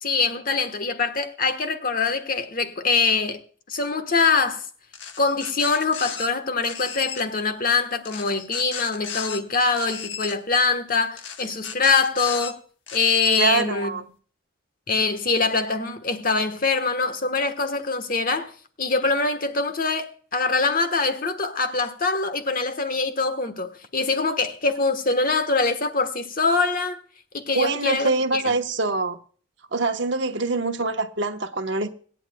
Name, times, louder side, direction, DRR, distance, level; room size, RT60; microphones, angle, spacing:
voice 1, 0.0-3.4 3.7-4.6 5.2-12.6 12.9-13.9 14.9-18.5 18.8-27.0 27.3-28.5, left 4 dB, 45° left, 1.2 m, -24 dB
sound 1, 4.9-6.3 6.6-7.2 8.0-9.4 9.7-10.4 11.2-12.5 12.9-13.5, left 7 dB, 65° left, 1.3 m, -35 dB
voice 2, 13.4-14.0 27.5-29.2 29.7-31.9, right 3 dB, 60° right, 1.0 m, -24 dB
25.5 x 8.9 x 2.2 m
head